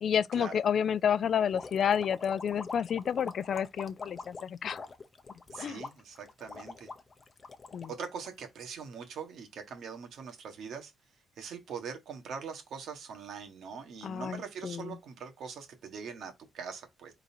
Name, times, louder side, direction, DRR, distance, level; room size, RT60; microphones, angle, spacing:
voice 1, 0.0-4.8 5.6-5.8 7.7-7.9 14.0-14.9, left 8 dB, 50° left, 0.4 m, -30 dB
sound 1, 1.5-8.8, left 4 dB, 25° left, 0.7 m, -44 dB
voice 2, 5.5-6.9 7.9-10.9 11.4-17.1, right 6 dB, 65° right, 1.5 m, -42 dB
4.7 x 3.8 x 2.8 m
cardioid pair, 145°, 0 cm